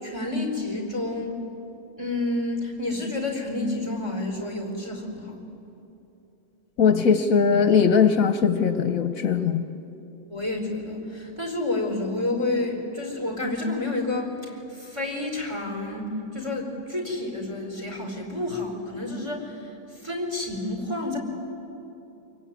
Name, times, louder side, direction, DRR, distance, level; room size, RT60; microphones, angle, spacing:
voice 1, 0.0-1.4 2.0-5.4 10.3-19.7 20.0-21.2, left 2 dB, 20° right, 3 dB, 4.6 m, -29 dB
voice 2, 6.8-9.6, left 6 dB, 65° left, 9 dB, 1.2 m, -20 dB
25.0 x 23.0 x 9.6 m, 2.9 s
omnidirectional pair, 1.6 m